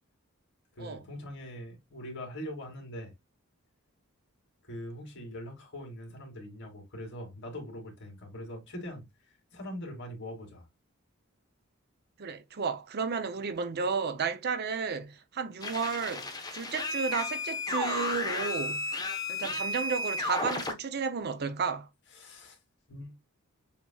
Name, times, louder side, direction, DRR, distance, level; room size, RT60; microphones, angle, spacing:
voice 1, 0.7-3.1 4.6-10.7 22.1-22.6 22.9-23.1, equal, 55° left, 2.3 m, -42 dB
voice 2, 12.2-18.8 19.3-21.9, right 5 dB, 50° right, 0.5 m, -33 dB
sound 1, 15.6-20.7, left 2 dB, 20° left, 1.0 m, -33 dB
7.0 x 2.9 x 2.3 m
head